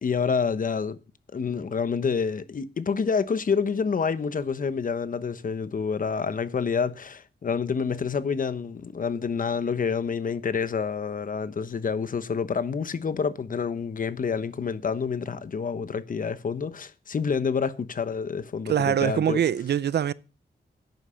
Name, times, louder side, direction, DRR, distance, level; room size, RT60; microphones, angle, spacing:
voice 1, 0.0-1.0 1.3-19.4, left 5 dB, 50° left, 1.0 m, -28 dB
voice 2, 18.7-20.1, right 9 dB, 70° right, 0.5 m, -23 dB
11.5 x 9.3 x 5.7 m
wide cardioid pair, 125°, 18 cm